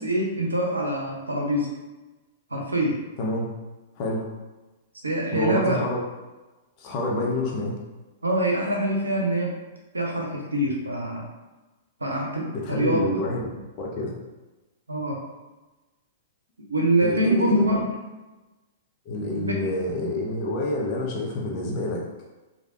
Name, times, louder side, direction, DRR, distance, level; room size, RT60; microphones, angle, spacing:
voice 1, 0.0-1.7 2.5-3.0 5.0-5.8 8.2-9.6 9.9-11.3 12.0-13.1 14.9-15.2 16.7-17.9 19.3-19.7, right 1 dB, 90° right, -1 dB, 0.7 m, -24 dB
voice 2, 5.3-6.0 6.8-7.7 12.5-13.4 13.8-14.2 17.0-17.7 19.1-22.0, left 1 dB, 40° left, -2 dB, 0.7 m, -27 dB
3.2 x 2.6 x 2.6 m, 1.1 s
figure-of-eight pair, 105°, 0 cm